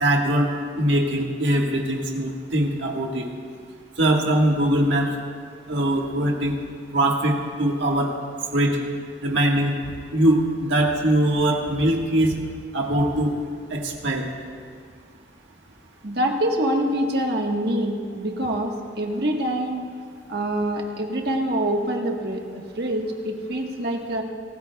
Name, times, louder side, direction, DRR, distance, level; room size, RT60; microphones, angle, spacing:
voice 1, 0.0-0.5 0.8-3.2 4.0-5.1 5.7-6.5 6.9-8.1 8.5-8.8 9.2-9.7 10.1-12.3 12.7-13.3 13.7-14.2, right 1 dB, 80° right, 0 dB, 1.6 m, -21 dB
voice 2, 16.0-19.8 20.3-24.2, right 1 dB, 60° right, 2 dB, 1.4 m, -25 dB
24.5 x 14.0 x 2.3 m, 2.1 s
head